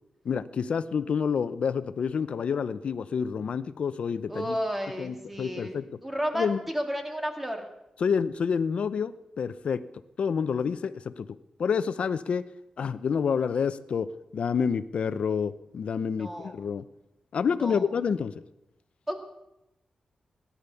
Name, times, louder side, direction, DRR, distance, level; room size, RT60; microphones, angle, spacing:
voice 1, 0.2-4.6 5.0-5.9 6.3-6.6 8.0-9.8 10.2-11.3 11.6-12.5 12.8-16.8 17.3-18.4, left 6 dB, 70° left, 13 dB, 0.7 m, -28 dB
voice 2, 4.3-5.8 6.0-6.5 6.7-7.6 16.2-16.5 17.6-17.9 19.1-19.2, equal, 10° right, 3 dB, 2.4 m, -32 dB
17.0 x 11.5 x 7.0 m, 0.91 s
wide cardioid pair, 120°, 2 cm